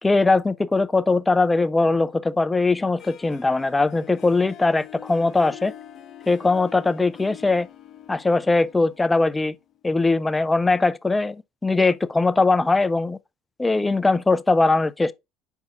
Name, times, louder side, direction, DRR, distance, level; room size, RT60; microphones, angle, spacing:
voice 1, 0.0-5.7 6.3-7.7 8.1-9.5 9.8-13.2 13.6-15.1, left 3 dB, 15° left, 0.5 m, -20 dB
Harp, 3.0-9.9, left 10 dB, 45° left, 0.9 m, -44 dB
5.5 x 4.6 x 3.8 m
hypercardioid pair, 60°, 0 cm